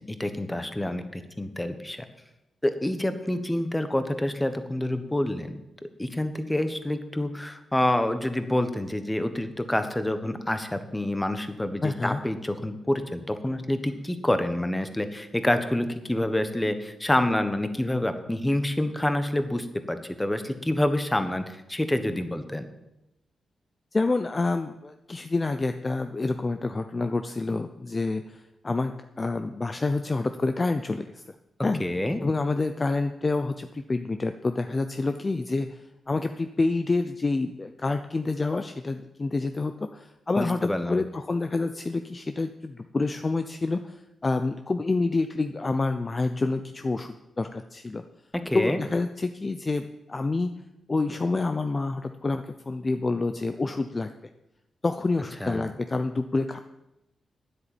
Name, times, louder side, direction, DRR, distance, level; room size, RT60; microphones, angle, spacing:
voice 1, 0.1-2.1 2.6-5.6 6.0-22.7 31.8-32.2 40.4-41.0 48.4-48.8 55.4-55.7, left 1 dB, 10° left, 9 dB, 1.2 m, -27 dB
voice 2, 11.8-12.2 23.9-31.2 31.6-31.8 32.2-48.0 48.5-50.5 50.9-54.1 54.8-56.6, left 3 dB, 25° left, 8 dB, 0.6 m, -28 dB
10.0 x 8.3 x 9.0 m, 0.93 s
wide cardioid pair, 115°, 0 cm